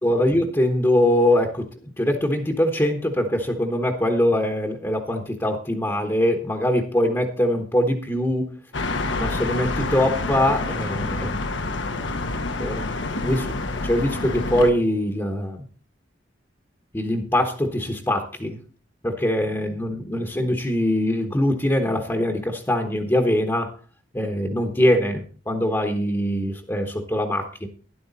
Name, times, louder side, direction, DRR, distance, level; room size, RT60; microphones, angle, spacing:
voice 1, 0.0-1.7 2.0-8.5 9.1-11.4 12.6-12.9 13.2-13.5 13.8-15.6 16.9-18.6 19.0-23.7 24.1-27.7, left 1 dB, 15° left, 3 dB, 1.1 m, -22 dB
sound 1, 8.7-14.7, left 2 dB, 80° left, 1.2 m, -27 dB
12.5 x 11.0 x 4.1 m, 0.38 s
head